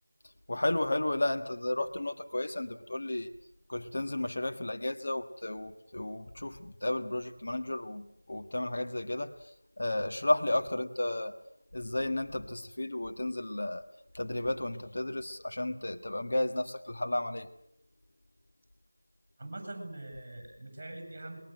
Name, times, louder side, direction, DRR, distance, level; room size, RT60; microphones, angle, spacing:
voice 1, 0.5-3.3 3.7-11.3 11.7-13.8 14.1-17.5, left 1 dB, 50° left, 6 dB, 1.6 m, -33 dB
voice 2, 19.4-21.4, right 1 dB, 25° right, 5 dB, 8.0 m, -43 dB
28.0 x 22.0 x 7.8 m, 0.74 s
figure-of-eight pair, 175°, 0 cm